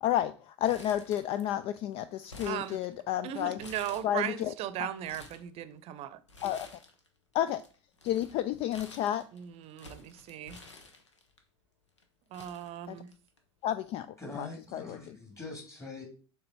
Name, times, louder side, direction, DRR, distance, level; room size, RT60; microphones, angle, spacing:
voice 1, 0.0-3.6 4.0-4.5 4.8-4.9 6.4-6.7 7.3-7.6 8.0-9.3 12.9-13.0 13.6-14.5 14.7-15.0, left 11 dB, 40° left, 0.3 m, -31 dB
Crumpling crinkling, 0.6-1.6 1.9-3.2 3.6-4.4 4.9-5.5 6.3-7.1 7.3-11.4 12.0-12.1 12.3-13.4 13.7-13.8 14.8-15.0, left 3 dB, 85° left, 1.1 m, -51 dB
voice 2, 2.4-2.8 3.2-6.2 9.3-10.6 12.3-13.1, right 11 dB, 45° right, 0.7 m, -37 dB
voice 3, 14.2-16.0, left 3 dB, 20° left, 2.8 m, -43 dB
6.7 x 3.8 x 4.3 m
figure-of-eight pair, 75°, 15 cm